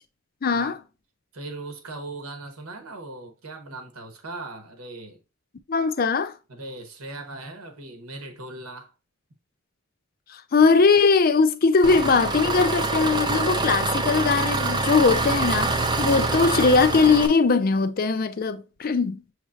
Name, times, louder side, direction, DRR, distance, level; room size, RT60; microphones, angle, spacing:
voice 1, 0.4-0.8 5.7-6.3 10.3-19.2, left 4 dB, 40° left, 0.4 m, -20 dB
voice 2, 1.3-5.2 6.5-8.9, right 2 dB, 80° right, 1.1 m, -39 dB
Engine, 11.8-17.3, right 3 dB, 20° right, 0.4 m, -25 dB
6.4 x 3.2 x 2.4 m
head